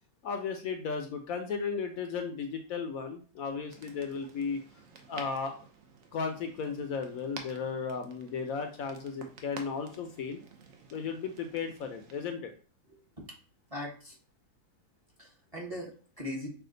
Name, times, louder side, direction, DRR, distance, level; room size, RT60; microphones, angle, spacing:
voice 1, 0.2-4.6 5.1-5.5 6.1-10.4 10.9-12.5, left 5 dB, 70° left, 6 dB, 0.9 m, -35 dB
sound 1, 3.7-12.3, right 5 dB, 60° right, 1.0 m, -51 dB
voice 2, 12.9-13.2 13.7-14.2 15.2-16.5, left 1 dB, 25° right, -1 dB, 0.9 m, -40 dB
5.7 x 2.4 x 3.8 m, 0.40 s
omnidirectional pair, 1.7 m